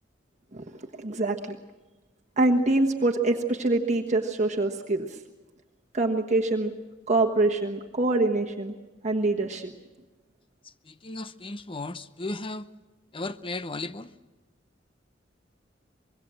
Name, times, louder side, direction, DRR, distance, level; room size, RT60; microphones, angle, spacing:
voice 1, 1.0-1.6 2.4-5.2 5.9-6.7 7.1-8.7 9.0-9.7, right 2 dB, 40° right, 1.3 m, -25 dB
voice 2, 10.9-12.7 13.1-14.1, left 2 dB, 30° left, 0.8 m, -35 dB
25.0 x 22.0 x 7.6 m
head